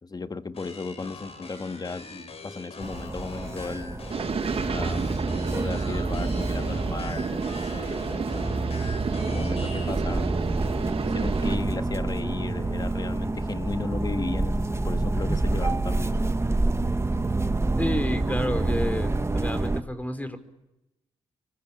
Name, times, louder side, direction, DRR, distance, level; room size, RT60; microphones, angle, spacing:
voice 1, 0.0-4.1 4.5-8.5 9.3-10.5 11.1-16.2, left 3 dB, 30° left, 10 dB, 2.1 m, -35 dB
sound 1, 0.5-10.0, left 3 dB, 50° left, 6.6 m, -43 dB
sound 2, 2.8-19.8, right 2 dB, 20° right, 2.0 m, -28 dB
sound 3, 4.1-11.6, right 5 dB, 50° right, 2.3 m, -32 dB
voice 2, 17.8-20.4, left 1 dB, 10° left, 10 dB, 5.0 m, -30 dB
27.0 x 25.0 x 8.8 m, 0.92 s
hypercardioid pair, 50°, 13 cm